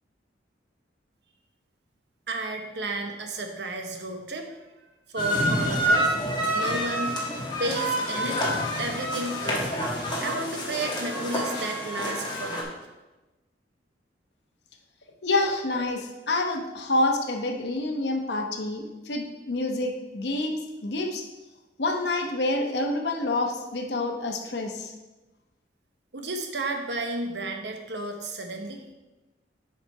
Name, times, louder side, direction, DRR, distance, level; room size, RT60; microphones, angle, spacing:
voice 1, 2.3-4.5 5.1-6.2 6.5-7.1 7.6-9.8 10.2-12.8 26.1-28.8, right 2 dB, 65° right, 4 dB, 0.9 m, -32 dB
sound 1, 5.2-12.6, equal, 25° left, 1.3 m, -27 dB
voice 2, 15.2-21.3 21.8-24.9, left 2 dB, 65° left, 3 dB, 0.9 m, -27 dB
7.0 x 4.9 x 4.7 m, 1.1 s
head